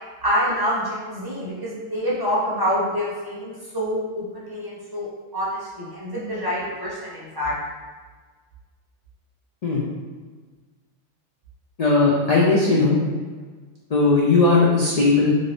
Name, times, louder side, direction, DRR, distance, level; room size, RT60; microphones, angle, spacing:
voice 1, 0.2-5.1 5.3-7.5, equal, 35° right, -8 dB, 0.4 m, -26 dB
voice 2, 11.8-13.0 13.9-15.3, left 3 dB, 80° left, -5 dB, 0.3 m, -18 dB
2.6 x 2.5 x 3.2 m, 1.4 s
omnidirectional pair, 1.2 m